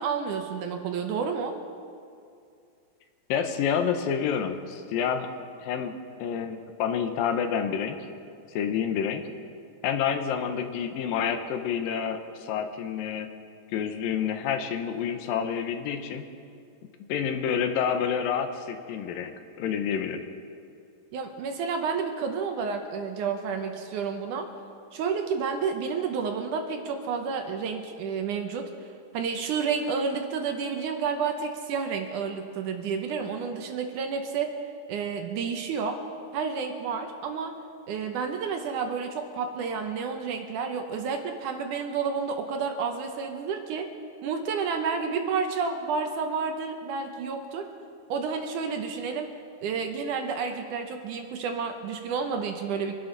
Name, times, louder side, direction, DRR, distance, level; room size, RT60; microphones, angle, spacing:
voice 1, 0.0-1.6 21.1-24.5 24.9-28.7 29.1-34.5 34.9-36.0 36.3-37.5 37.9-43.9 44.2-47.7 48.1-49.3 49.6-52.9, right 5 dB, 70° right, 5 dB, 2.2 m, -30 dB
voice 2, 3.3-5.3 5.6-8.0 8.5-9.2 9.8-13.3 13.7-16.2 17.1-20.2, left 7 dB, 80° left, 7 dB, 2.6 m, -28 dB
25.5 x 12.0 x 4.0 m, 2.4 s
omnidirectional pair, 4.1 m